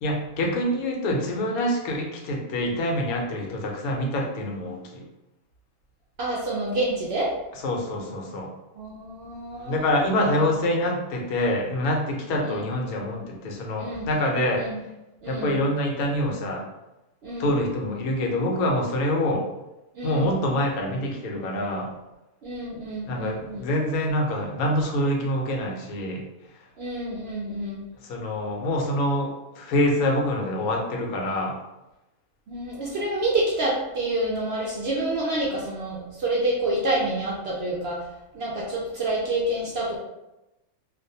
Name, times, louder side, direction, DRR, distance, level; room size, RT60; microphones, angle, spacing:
voice 1, 0.0-5.0 7.6-8.5 9.6-14.6 15.3-16.6 17.4-19.5 20.0-21.9 23.0-26.2 26.5-26.6 28.0-31.6, left 1 dB, 90° left, 0 dB, 1.1 m, -26 dB
voice 2, 6.2-7.3 8.8-9.9 10.1-10.3 12.4-12.6 13.8-14.1 14.6-14.7 15.2-15.6 17.2-17.5 19.9-20.3 22.4-23.7 26.8-27.9 32.5-38.1 38.3-40.0, right 1 dB, 65° right, -4 dB, 0.6 m, -28 dB
2.5 x 2.1 x 2.6 m, 0.96 s
omnidirectional pair, 1.5 m